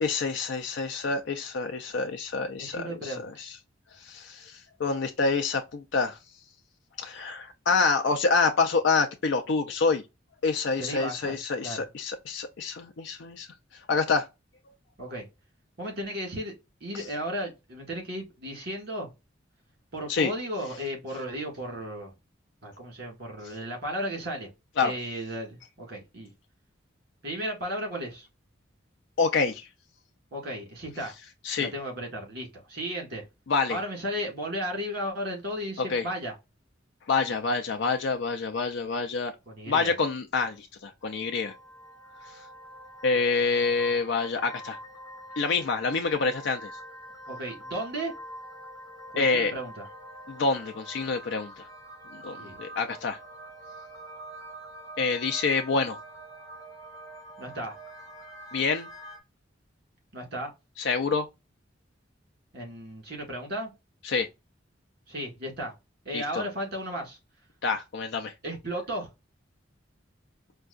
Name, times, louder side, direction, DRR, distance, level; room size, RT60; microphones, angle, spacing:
voice 1, 0.0-3.5 4.0-6.2 7.0-10.0 10.4-13.5 13.9-14.3 16.9-17.0 20.1-20.3 24.8-24.9 29.2-29.7 31.4-31.7 33.5-33.8 35.8-36.0 37.1-39.3 39.7-41.5 43.0-44.8 45.4-46.7 49.2-49.5 50.3-51.7 52.1-53.2 55.0-56.0 58.5-58.9 60.8-61.3 64.0-64.3 66.1-66.4 67.6-68.3, left 4 dB, 65° left, 0.5 m, -27 dB
voice 2, 2.6-3.3 10.8-11.4 11.6-11.8 15.0-15.3 15.8-16.5 16.8-19.1 19.9-22.1 22.6-24.5 24.8-26.3 27.2-28.3 30.3-31.1 31.6-33.2 33.7-36.3 39.5-39.9 47.3-48.1 49.1-49.9 52.4-52.6 57.4-57.8 60.1-60.5 62.5-63.7 65.1-65.7 66.1-67.2 68.4-69.1, equal, 55° right, 1.8 m, -34 dB
sound 1, 41.1-59.2, right 1 dB, 20° left, 0.8 m, -45 dB
4.5 x 2.2 x 2.4 m
head